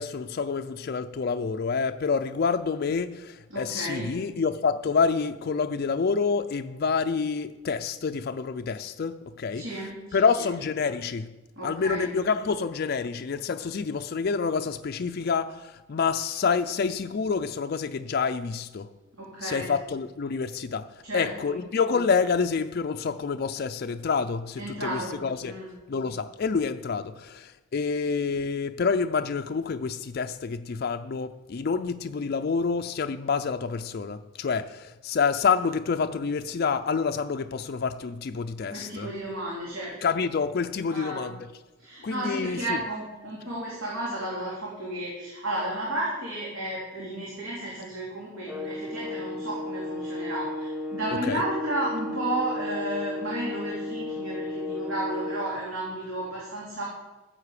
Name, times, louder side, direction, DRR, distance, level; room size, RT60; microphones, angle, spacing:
voice 1, 0.0-9.7 10.1-11.3 11.6-18.9 19.4-25.5 25.9-39.1 40.0-41.4 42.0-42.8 51.3-51.4, left 5 dB, 50° left, 0.4 m, -28 dB
voice 2, 3.5-4.2 9.5-10.5 11.6-12.1 19.2-19.7 21.0-21.6 24.6-25.2 25.4-25.7 38.7-39.9 40.9-41.3 41.8-56.8, right 1 dB, 75° right, 3.0 m, -33 dB
sound 1, 48.5-55.5, left 2 dB, 5° right, 0.7 m, -34 dB
14.5 x 7.5 x 4.9 m
head